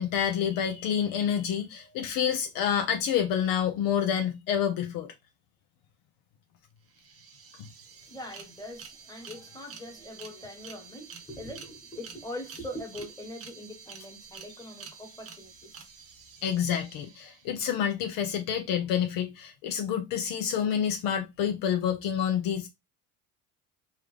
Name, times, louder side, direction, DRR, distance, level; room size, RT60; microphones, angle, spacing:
voice 1, 0.0-5.1 16.4-22.7, left 8 dB, 60° left, 0.7 m, -28 dB
voice 2, 1.8-2.1 8.1-15.9, left 1 dB, 10° left, 1.5 m, -42 dB
sound 1, 6.6-6.7 6.9-17.7, right 6 dB, 35° right, 0.9 m, -49 dB
3.4 x 2.4 x 3.2 m
supercardioid pair, 95°, 38 cm